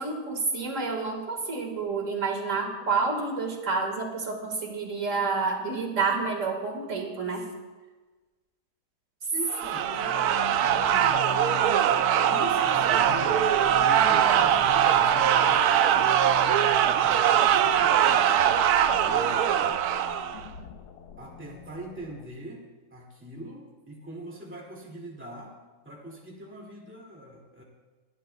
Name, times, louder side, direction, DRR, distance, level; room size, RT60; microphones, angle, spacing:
voice 1, 0.0-7.5 14.0-14.3, right 4 dB, 50° right, 2 dB, 2.0 m, -29 dB
voice 2, 9.3-10.3 10.6-11.3 12.2-18.8 19.0-19.9 21.2-22.7 22.9-25.6 25.8-27.6, right 1 dB, 5° right, -2 dB, 2.1 m, -42 dB
sound 1, 9.5-20.4, right 10 dB, 75° right, 1.1 m, -22 dB
sound 2, 9.6-22.3, left 9 dB, 70° left, 1.4 m, -42 dB
23.5 x 11.5 x 2.2 m, 1.3 s
omnidirectional pair, 1.8 m